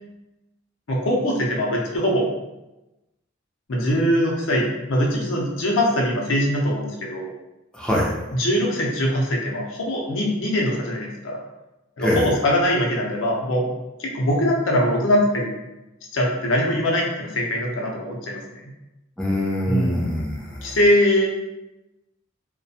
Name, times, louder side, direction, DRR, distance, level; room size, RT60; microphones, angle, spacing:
voice 1, 0.9-2.3 3.7-7.3 8.3-11.4 12.0-13.7 14.0-15.5 16.1-18.4 19.7-20.1 20.6-21.3, equal, 70° left, -2 dB, 0.6 m, -22 dB
voice 2, 7.7-8.1 12.0-12.3 19.2-20.8, equal, 5° left, -5 dB, 0.4 m, -23 dB
2.4 x 2.2 x 2.7 m, 0.98 s
head